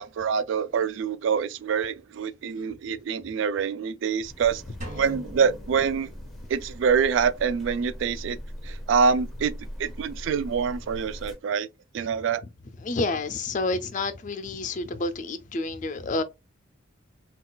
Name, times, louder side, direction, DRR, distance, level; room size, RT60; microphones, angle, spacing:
voice 1, 0.0-4.6 5.0-6.1 6.5-8.4 8.6-9.5 9.8-11.7 11.9-12.4, right 6 dB, 70° right, 0.3 m, -25 dB
sound 1, 4.2-11.4, equal, ahead, 0.7 m, -40 dB
sound 2, 4.8-6.8, equal, 40° right, 1.1 m, -42 dB
voice 2, 12.8-16.2, left 2 dB, 40° left, 0.4 m, -29 dB
3.8 x 2.3 x 2.3 m
head